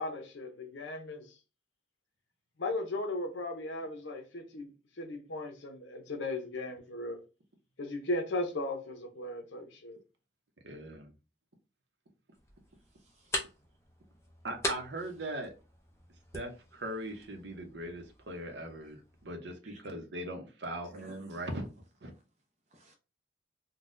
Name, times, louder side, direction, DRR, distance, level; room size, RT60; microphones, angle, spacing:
voice 1, 0.0-1.4 2.6-4.7 5.0-7.2 7.8-10.0, left 2 dB, 90° left, 0.7 m, -37 dB
voice 2, 10.6-11.2 14.4-15.5 16.3-21.7 22.0-22.1, right 1 dB, 75° right, 0.8 m, -40 dB
sound 1, 12.3-19.3, left 1 dB, 15° left, 0.5 m, -42 dB
voice 3, 12.9-13.5 18.8-18.9 19.6-19.8 20.9-21.5 22.1-22.2 22.7-23.0, equal, 35° right, 0.5 m, -59 dB
3.9 x 2.2 x 2.5 m
head